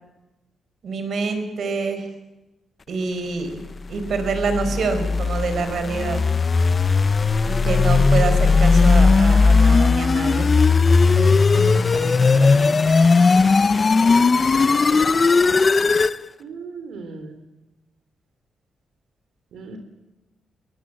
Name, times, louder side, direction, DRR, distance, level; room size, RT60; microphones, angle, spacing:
voice 1, 0.8-2.1 2.9-3.6 3.9-6.2 7.4-10.5 10.9-12.8, right 4 dB, 60° right, 8 dB, 4.5 m, -26 dB
sound 1, 4.0-16.2, left 4 dB, 30° left, 0.7 m, -17 dB
voice 2, 16.4-17.4 19.5-19.8, right 4 dB, 80° right, 7 dB, 3.5 m, -37 dB
22.0 x 21.0 x 7.5 m, 1.0 s
cardioid pair, 130°, 0 cm